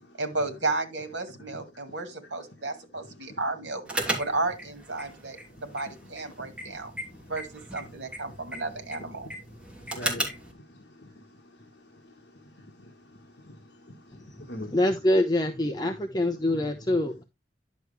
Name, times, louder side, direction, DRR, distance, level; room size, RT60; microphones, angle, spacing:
voice 1, 0.2-3.8 4.2-6.9 7.3-9.3, right 3 dB, 70° right, 2.1 m, -33 dB
sound 1, 3.8-10.5, right 1 dB, 5° right, 2.9 m, -36 dB
voice 2, 9.8-12.1 12.4-14.8, left 1 dB, 65° left, 1.6 m, -45 dB
voice 3, 14.7-17.2, left 1 dB, 20° left, 0.8 m, -25 dB
11.0 x 6.3 x 3.3 m
head